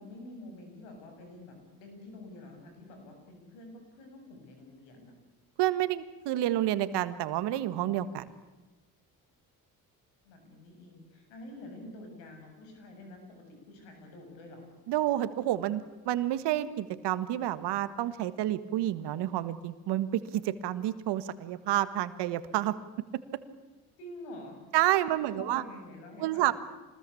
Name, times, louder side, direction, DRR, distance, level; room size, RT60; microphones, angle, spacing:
voice 1, 0.0-5.2 10.2-14.7 24.0-24.6 25.1-26.5, left 1 dB, 85° left, 4 dB, 7.4 m, -48 dB
voice 2, 5.6-8.3 14.9-22.8 24.7-25.6 26.2-26.5, right 13 dB, 75° right, 13 dB, 1.7 m, -29 dB
25.5 x 20.5 x 8.6 m, 1.2 s
supercardioid pair, 60°, 41 cm